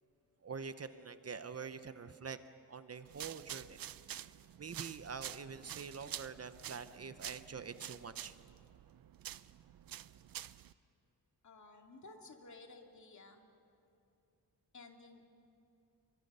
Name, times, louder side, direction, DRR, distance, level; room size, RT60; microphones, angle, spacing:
voice 1, 0.4-2.4 2.7-4.3 4.6-8.4, right 5 dB, 40° right, 11 dB, 0.8 m, -46 dB
sound 1, 3.1-10.7, right 11 dB, 70° right, 0.6 m, -48 dB
voice 2, 11.4-13.4 14.7-15.2, left 3 dB, 50° left, 3 dB, 2.5 m, -55 dB
29.0 x 24.0 x 5.6 m, 2.8 s
wide cardioid pair, 130°, 37 cm